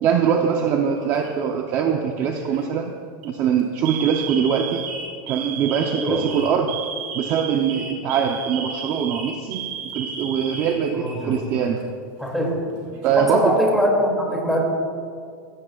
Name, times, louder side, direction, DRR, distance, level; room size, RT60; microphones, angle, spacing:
voice 1, 0.0-2.9 3.2-4.9 5.3-6.7 7.1-9.6 9.9-11.8 13.0-13.5, right 7 dB, 30° right, 3 dB, 0.7 m, -22 dB
Alarm, 0.9-1.5 2.3-2.6 3.1-3.3 3.8-11.4 11.7-11.8 12.7-13.4, right 7 dB, 50° right, 3.3 m, -33 dB
voice 2, 5.9-6.2 10.9-11.5 12.2-12.6 13.2-14.6, equal, ahead, -2 dB, 2.5 m, -22 dB
24.0 x 16.5 x 2.4 m, 2.3 s
supercardioid pair, 175°, 11 cm